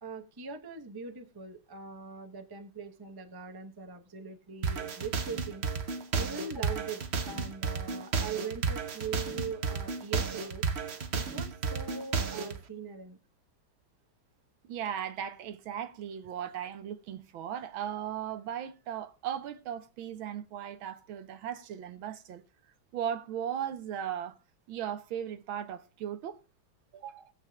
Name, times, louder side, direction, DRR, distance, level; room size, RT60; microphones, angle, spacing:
voice 1, 0.0-5.6 6.1-10.7 11.1-13.2, right 5 dB, 20° right, 0.6 m, -41 dB
sound 1, 4.6-12.6, right 5 dB, 45° right, 0.9 m, -32 dB
voice 2, 14.6-22.4 22.9-24.4 24.7-26.4 26.9-27.3, right 9 dB, 85° right, 1.7 m, -37 dB
21.0 x 7.7 x 2.3 m
omnidirectional pair, 2.2 m